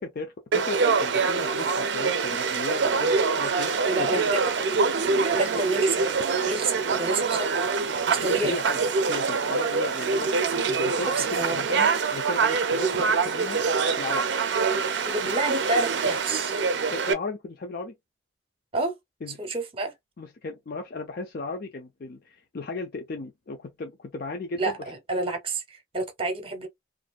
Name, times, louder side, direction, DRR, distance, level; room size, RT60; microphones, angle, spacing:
voice 1, 0.0-4.3 8.2-8.8 9.1-10.3 10.7-13.6 14.0-14.2 16.9-17.9 19.2-19.4 20.2-24.8, left 3 dB, 55° left, 0.4 m, -35 dB
Conversation / Crowd, 0.5-17.1, right 5 dB, 70° right, 0.4 m, -25 dB
voice 2, 3.9-4.4 4.7-6.0 6.4-7.7 8.1-8.6 11.1-11.7 15.0-16.5 18.7-18.9 19.4-19.9 24.6-26.7, right 2 dB, 30° right, 0.7 m, -29 dB
2.5 x 2.3 x 2.3 m
head